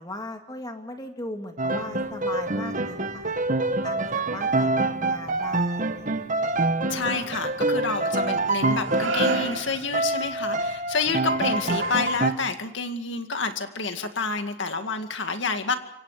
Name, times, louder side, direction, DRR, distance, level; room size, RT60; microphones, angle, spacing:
voice 1, 0.0-3.5 3.8-6.5, left 2 dB, 20° left, 4 dB, 2.0 m, -38 dB
Piano, 1.6-9.6 9.9-12.3, right 2 dB, 40° right, 1.3 m, -26 dB
voice 2, 6.9-15.7, left 4 dB, 60° left, 6 dB, 2.2 m, -29 dB
sound 1, 7.0-7.7 8.7-10.2 11.6-12.6, right 3 dB, 75° right, 2.8 m, -34 dB
27.0 x 25.0 x 5.1 m, 0.78 s
head